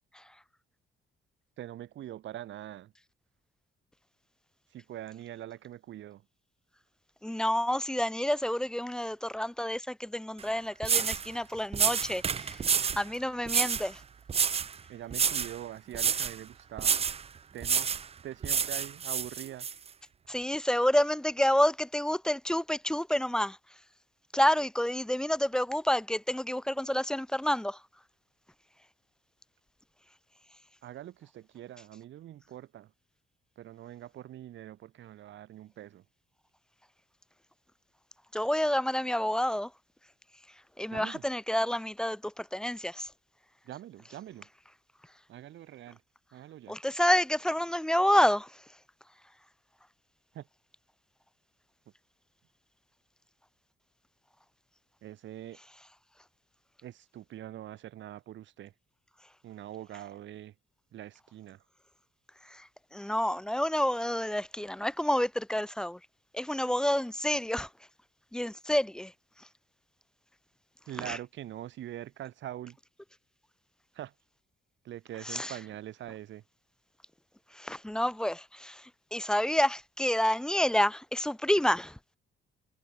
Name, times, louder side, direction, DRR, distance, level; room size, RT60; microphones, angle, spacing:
voice 1, 1.6-2.9 4.7-6.2 14.9-17.0 17.5-17.9 18.2-19.7 30.8-32.9 33.6-36.0 40.9-41.3 43.6-44.5 45.3-46.0 46.3-46.8 50.3-50.5 55.0-55.6 56.8-58.7 59.4-60.5 60.9-61.6 70.9-72.8 73.9-74.1 74.8-76.4, right 12 dB, 70° right, 1.9 m, -43 dB
voice 2, 7.2-12.6 13.0-14.0 20.3-23.6 24.3-27.8 38.3-39.7 40.8-43.1 46.7-48.5 62.9-66.0 66.3-67.7 68.3-69.1 71.1-71.2 75.3-75.5 77.6-78.8 79.1-81.9, left 1 dB, 5° left, 0.4 m, -28 dB
sound 1, 10.4-10.5 10.8-11.3 11.7-13.0 13.5-13.9 14.3-14.7 15.1-15.6 15.9-16.4 16.8-17.2 17.6-18.1 18.4-19.7, right 6 dB, 30° right, 0.8 m, -28 dB
cardioid pair, 145°, 20 cm